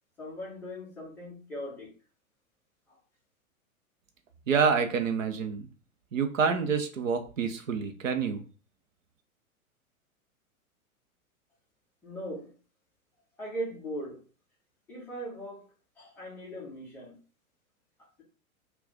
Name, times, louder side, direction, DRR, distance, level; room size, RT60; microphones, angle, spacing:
voice 1, 0.2-1.9 2.9-3.0 12.0-12.5 13.4-14.2 14.9-15.7 16.0-17.2, equal, 5° left, 0.4 m, -39 dB
voice 2, 4.5-5.7 6.1-8.4, right 6 dB, 65° right, 0.7 m, -27 dB
2.4 x 2.3 x 3.8 m
figure-of-eight pair, 100°, 43 cm